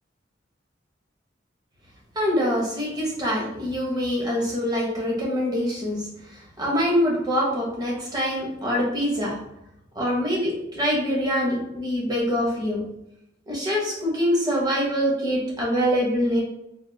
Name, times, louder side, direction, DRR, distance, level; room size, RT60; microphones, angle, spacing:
voice 1, 2.2-6.1 6.6-9.3 9.9-12.8 13.5-16.4, equal, 20° right, -4 dB, 0.9 m, -24 dB
3.4 x 2.4 x 2.6 m, 0.86 s
head